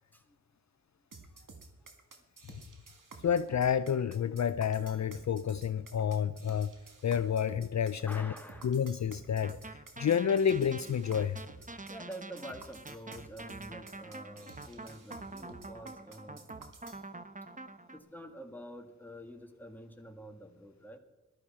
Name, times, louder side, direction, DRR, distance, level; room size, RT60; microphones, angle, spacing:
sound 1, 1.1-17.0, right 3 dB, 80° right, 1.5 m, -52 dB
voice 1, 3.2-6.7 7.0-8.3 8.6-11.4, left 8 dB, 60° left, 13 dB, 0.4 m, -29 dB
voice 2, 8.1-8.8 11.9-16.5 17.5-17.6 17.9-21.0, equal, 5° left, 4 dB, 1.9 m, -47 dB
sound 2, 9.4-18.0, right 2 dB, 25° right, 0.8 m, -46 dB
14.5 x 12.0 x 4.3 m, 1.1 s
cardioid pair, 45°, 31 cm